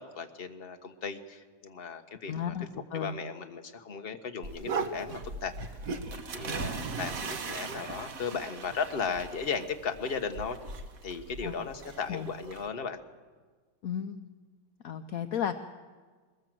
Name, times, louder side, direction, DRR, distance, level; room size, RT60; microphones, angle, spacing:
voice 1, 0.0-2.7 2.9-5.5 6.1-10.6 11.0-13.0, left 5 dB, 35° left, 7 dB, 1.2 m, -36 dB
voice 2, 2.3-3.2 11.4-11.5 12.1-12.3 13.8-14.2 14.8-15.6, left 8 dB, 65° left, 8 dB, 0.9 m, -34 dB
sound 1, 4.4-12.7, right 4 dB, 45° right, 1.5 m, -38 dB
22.0 x 20.5 x 7.7 m, 1.5 s
omnidirectional pair, 2.3 m